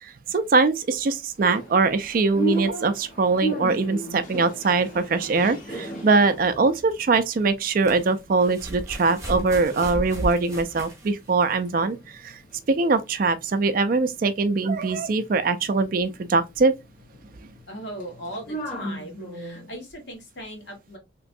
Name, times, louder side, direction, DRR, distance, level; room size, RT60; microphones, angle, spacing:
voice 1, 0.0-12.4 12.7-16.7, right 3 dB, 45° right, 0.4 m, -22 dB
sound 1, 1.4-8.6 8.9-9.9 10.2-19.8, right 1 dB, 45° left, 1.1 m, -37 dB
sound 2, 5.3-5.4 7.4-11.7 12.7-12.8, right 1 dB, 15° right, 1.0 m, -34 dB
voice 2, 17.7-21.0, equal, 60° left, 1.5 m, -38 dB
3.3 x 3.0 x 2.6 m
head